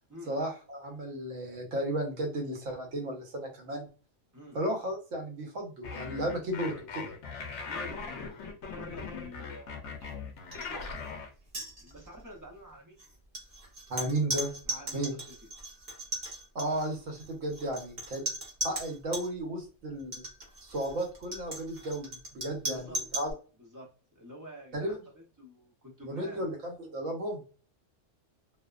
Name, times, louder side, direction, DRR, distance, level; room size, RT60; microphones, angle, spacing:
voice 1, 0.3-3.9 4.5-7.0 13.9-14.5 14.9-15.1 16.5-18.2 18.6-20.2 20.6-23.3 24.7-25.0 26.0-27.4, right 1 dB, 75° right, 1 dB, 1.2 m, -34 dB
sound 1, 5.8-11.3, left 5 dB, 70° left, 0.9 m, -40 dB
voice 2, 7.7-8.4 8.7-9.8 10.5-11.1 11.8-13.0 14.7-15.5 22.6-23.0 23.6-26.4, left 1 dB, 20° right, -1 dB, 0.5 m, -48 dB
sound 2, 10.5-10.7 11.0-11.1 11.5-12.2 13.0-19.3 20.0-23.3, right 1 dB, 40° right, 0.9 m, -38 dB
2.7 x 2.1 x 2.3 m, 0.37 s
omnidirectional pair, 1.3 m